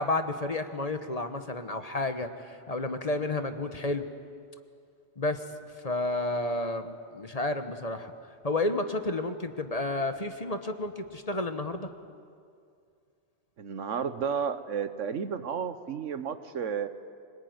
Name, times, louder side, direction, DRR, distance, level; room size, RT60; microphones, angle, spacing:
voice 1, 0.0-4.1 5.2-5.4 5.8-8.1 8.4-11.9, left 2 dB, 35° left, 8 dB, 1.2 m, -31 dB
voice 2, 13.6-16.9, right 7 dB, 85° right, 11 dB, 1.4 m, -32 dB
26.0 x 19.5 x 9.5 m, 2.3 s
omnidirectional pair, 1.2 m